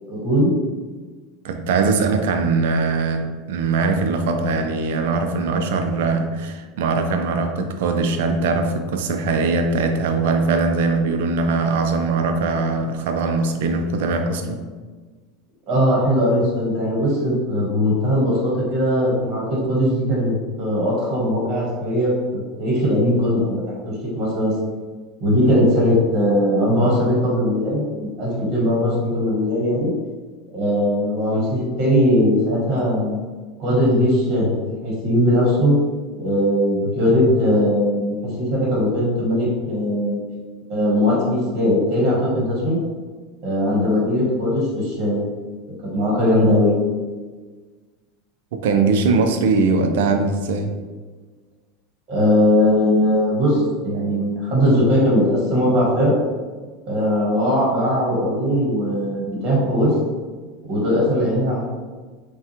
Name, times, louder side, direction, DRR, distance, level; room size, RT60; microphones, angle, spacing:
voice 1, 0.1-0.5 15.7-23.8 24.0-24.5 25.2-29.9 30.5-33.2 33.6-35.7 36.1-40.2 40.7-42.8 43.4-45.4 45.9-46.8 52.1-56.1 56.9-59.9 60.6-61.6, equal, 35° right, -5 dB, 1.3 m, -19 dB
voice 2, 1.4-14.6 48.6-50.8, right 4 dB, 80° right, 6 dB, 0.5 m, -21 dB
5.7 x 2.3 x 2.9 m, 1.4 s
supercardioid pair, 155°, 0 cm